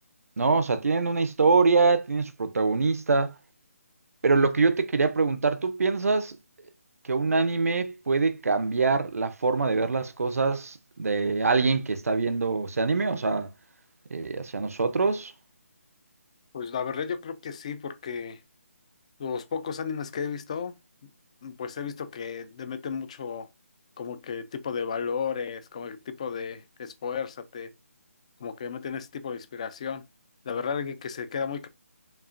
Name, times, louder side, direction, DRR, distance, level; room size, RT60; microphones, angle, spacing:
voice 1, 0.4-3.3 4.2-6.4 7.1-13.5 14.1-15.3, right 4 dB, 85° right, 0.5 m, -24 dB
voice 2, 16.5-18.4 19.2-20.8 21.0-21.1 21.4-23.5 24.0-27.7 28.4-30.0 30.4-31.7, left 6 dB, 25° left, 0.3 m, -33 dB
5.3 x 2.4 x 2.4 m
hypercardioid pair, 165°, 8 cm